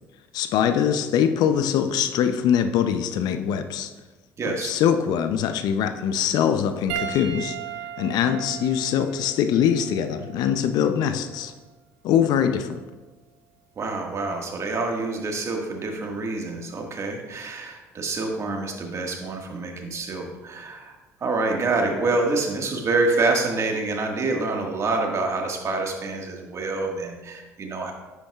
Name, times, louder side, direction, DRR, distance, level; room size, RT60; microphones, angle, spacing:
voice 1, 0.3-3.9 4.6-7.6 8.0-11.5 12.0-12.8, left 8 dB, 65° left, 9 dB, 0.6 m, -23 dB
voice 2, 4.4-4.8 13.8-21.0 21.2-27.9, right 3 dB, 40° right, 2 dB, 1.7 m, -27 dB
Piano, 6.9-11.6 12.5-12.7 14.6-14.7, right 10 dB, 75° right, 1.2 m, -37 dB
10.5 x 8.4 x 2.4 m, 1.2 s
hypercardioid pair, 65°, 7 cm